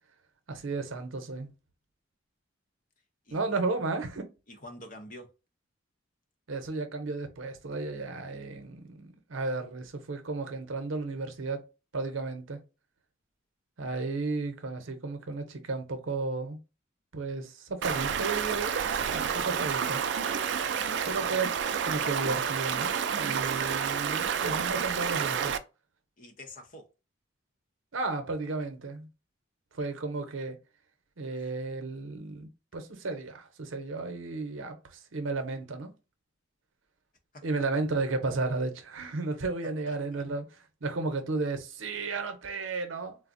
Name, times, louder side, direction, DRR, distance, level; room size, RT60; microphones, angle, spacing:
voice 1, 0.5-1.5 3.3-4.3 6.5-11.7 11.9-12.6 13.8-16.6 17.1-18.8 19.1-20.0 21.0-21.5 21.8-25.5 27.9-29.1 29.7-30.6 31.2-35.9 37.4-40.4 40.8-43.2, right 3 dB, 85° right, 0.8 m, -33 dB
voice 2, 3.3-3.6 4.5-5.3 26.2-26.9 37.3-37.7 39.6-40.3, left 1 dB, 40° left, 0.6 m, -48 dB
Stream, 17.8-25.6, right 7 dB, 60° right, 0.3 m, -29 dB
3.5 x 2.0 x 2.5 m
head